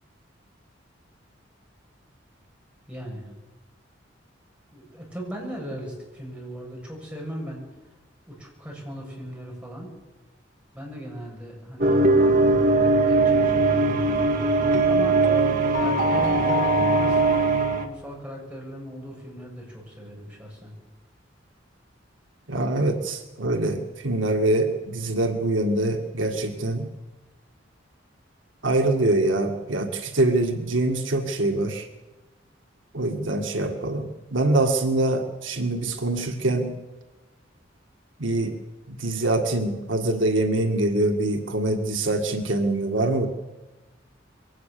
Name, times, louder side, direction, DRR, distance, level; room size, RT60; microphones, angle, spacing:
voice 1, 2.9-3.3 4.7-7.6 8.3-9.9 10.7-15.2 15.8-20.8, equal, 5° right, -2 dB, 7.1 m, -38 dB
sound 1, 11.8-17.9, right 2 dB, 50° right, 1.7 m, -20 dB
voice 2, 22.5-26.9 28.6-31.9 32.9-36.7 38.2-38.6 38.9-43.3, right 2 dB, 80° right, 4 dB, 1.9 m, -24 dB
22.5 x 18.0 x 6.9 m, 1.1 s
head